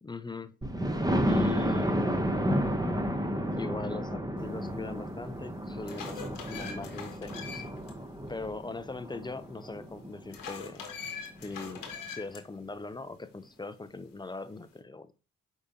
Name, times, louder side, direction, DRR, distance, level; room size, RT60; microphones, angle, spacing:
voice 1, 0.0-0.5 1.2-2.7 3.5-7.6 8.3-10.9 11.4-11.9 12.1-15.1, left 3 dB, 15° left, 0.4 m, -40 dB
Thunder, 0.6-10.3 10.9-11.0 11.4-11.5 11.8-11.9, equal, 10° right, 0.8 m, -31 dB
sound 1, 4.9-5.0 5.5-7.9 8.3-8.4 10.3-12.4, left 6 dB, 75° left, 1.1 m, -42 dB
5.0 x 3.6 x 2.7 m
supercardioid pair, 50°, 34 cm